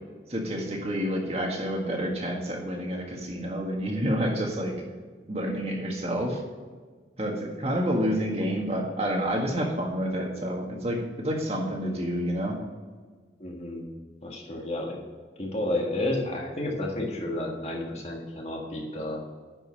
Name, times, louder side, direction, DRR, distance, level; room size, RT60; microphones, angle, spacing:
voice 1, 0.3-4.7 5.3-6.4 7.2-12.6, equal, 35° right, 0 dB, 1.7 m, -29 dB
voice 2, 13.4-13.9 14.2-15.0 15.4-19.3, left 1 dB, 35° left, 0 dB, 1.7 m, -31 dB
10.5 x 5.5 x 5.6 m, 1.5 s
head